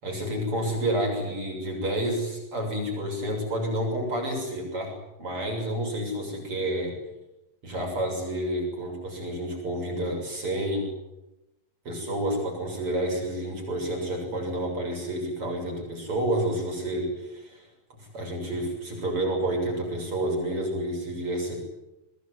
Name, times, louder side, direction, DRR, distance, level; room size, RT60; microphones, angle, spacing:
voice 1, 0.0-4.9 5.2-6.9 7.6-10.9 11.9-17.7 18.0-21.6, right 1 dB, 45° right, 2 dB, 7.8 m, -29 dB
25.0 x 20.0 x 9.8 m, 0.96 s
omnidirectional pair, 3.5 m